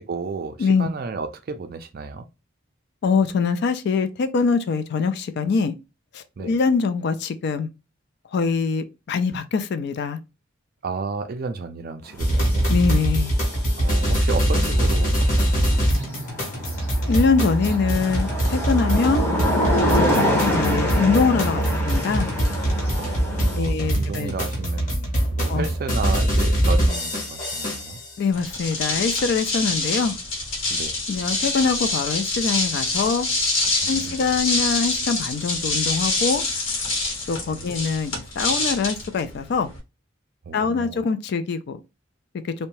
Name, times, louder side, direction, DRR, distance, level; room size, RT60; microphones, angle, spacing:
voice 1, 0.0-2.3 6.4-6.5 10.8-12.7 13.8-16.2 19.0-19.1 22.9-28.0 30.7-30.9 33.8-34.3 37.5-37.8 40.5-41.0, right 4 dB, 45° right, 0.4 m, -33 dB
voice 2, 3.0-5.7 6.1-7.7 8.3-10.2 12.7-13.3 17.1-19.3 20.5-22.3 23.6-24.3 25.5-25.7 28.2-30.2 31.1-33.3 33.9-36.4 37.3-39.7 40.5-41.8, left 5 dB, 55° left, 0.3 m, -23 dB
sound 1, 12.2-28.1, right 1 dB, 40° left, 1.0 m, -23 dB
sound 2, 12.3-23.6, left 1 dB, 10° left, 0.7 m, -26 dB
sound 3, 28.3-39.8, left 2 dB, 75° left, 1.0 m, -26 dB
2.7 x 2.1 x 2.9 m
head